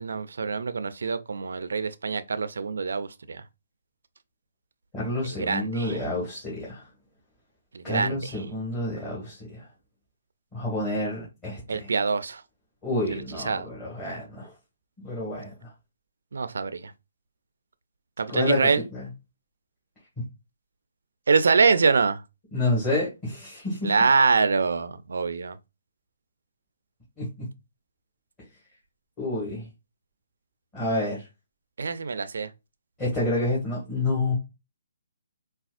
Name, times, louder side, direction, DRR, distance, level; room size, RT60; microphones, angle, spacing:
voice 1, 0.0-3.4 5.3-6.0 7.7-8.4 11.7-12.4 13.1-13.7 16.3-16.9 18.2-18.8 21.3-22.2 23.8-25.6 31.8-32.5, right 4 dB, 80° right, 0.4 m, -25 dB
voice 2, 4.9-6.8 7.8-9.6 10.5-11.9 12.8-14.5 15.0-15.5 18.3-19.0 22.5-23.9 27.2-27.3 29.2-29.6 30.7-31.2 33.0-34.3, left 2 dB, 15° left, 1.7 m, -29 dB
4.1 x 2.3 x 2.4 m
hypercardioid pair, 155°, 0 cm